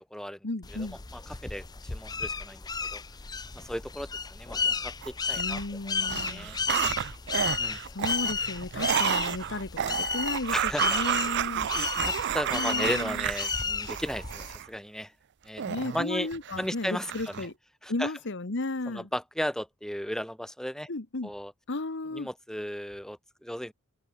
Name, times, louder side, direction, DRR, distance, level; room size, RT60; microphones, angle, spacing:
voice 1, 0.4-1.0 5.4-6.5 7.9-10.6 10.8-11.7 12.5-13.3 15.7-17.5 17.9-19.1 20.9-21.3 21.7-22.3, left 2 dB, 60° left, 1.3 m, -34 dB
sound 1, 0.6-14.6, left 5 dB, 20° left, 0.6 m, -33 dB
voice 2, 1.1-3.0 3.5-6.6 7.6-7.8 10.5-11.0 12.0-15.1 15.4-15.6 15.9-16.3 16.6-17.5 17.8-18.1 18.9-20.9 21.2-21.5 22.1-23.7, equal, 5° left, 3.0 m, -35 dB
sound 2, 5.0-5.7 6.0-14.7 15.6-16.7 17.0-17.5, right 9 dB, 55° right, 0.4 m, -31 dB
head